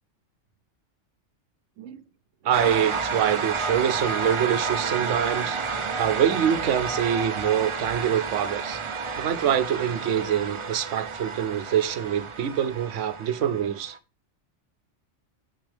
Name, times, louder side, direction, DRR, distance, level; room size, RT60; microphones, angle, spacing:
voice 1, 2.4-5.6 6.0-8.8 9.2-13.9, right 9 dB, 80° right, 1.0 m, -25 dB
sound 1, 2.5-14.0, right 5 dB, 50° right, 0.3 m, -30 dB
6.9 x 6.0 x 3.3 m
omnidirectional pair, 1.3 m